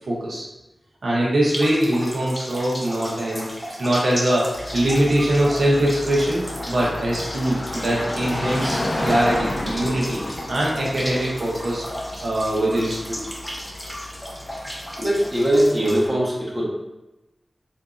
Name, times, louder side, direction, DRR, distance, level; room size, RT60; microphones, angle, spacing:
voice 1, 0.1-0.4 1.0-3.5 3.8-10.2 10.5-11.8 12.2-13.2, right 1 dB, 85° right, -5 dB, 0.8 m, -22 dB
sound 1, 1.5-16.1, equal, 15° left, 0.7 m, -35 dB
Car passing by, 4.5-15.7, left 1 dB, 55° left, 0.5 m, -32 dB
voice 2, 15.0-16.6, right 1 dB, 20° right, -6 dB, 1.1 m, -20 dB
3.8 x 2.7 x 2.4 m, 0.99 s
wide cardioid pair, 55°, 0 cm